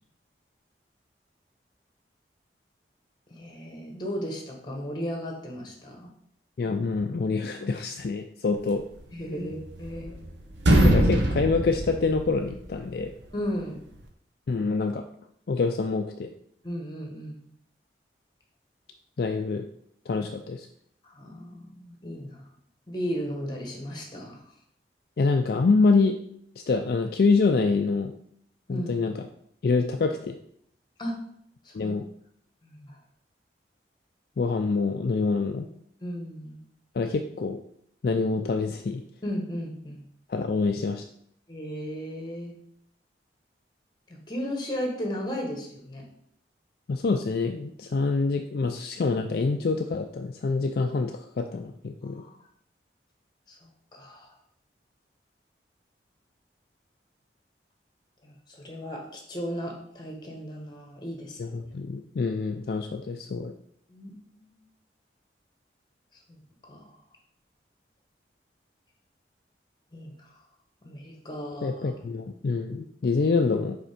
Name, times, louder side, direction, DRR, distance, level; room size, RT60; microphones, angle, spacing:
voice 1, 3.3-6.1 9.1-10.1 13.3-13.8 16.6-17.5 21.0-22.4 22.9-24.4 28.7-29.0 31.0-31.2 31.6-31.9 32.6-33.0 36.0-36.6 39.2-40.0 41.5-42.5 44.1-46.0 52.0-52.4 53.5-53.6 53.9-54.3 58.2-61.5 63.9-64.1 64.3-64.5 66.3-67.0 69.9-70.1 70.8-71.8, equal, 25° left, 1 dB, 1.3 m, -35 dB
voice 2, 6.6-8.8 10.8-13.1 14.5-15.1 15.5-16.3 19.2-19.7 20.1-20.7 25.2-26.2 26.7-28.1 28.7-29.3 29.6-30.4 31.7-32.0 34.4-35.7 36.9-37.6 38.0-39.0 40.3-41.0 46.9-52.2 61.4-63.5 71.6-73.8, left 4 dB, 55° left, 5 dB, 0.4 m, -26 dB
sound 1, 9.4-10.3 10.5-12.7, right 1 dB, 80° right, 0.9 m, -22 dB
5.2 x 4.2 x 5.1 m, 0.69 s
head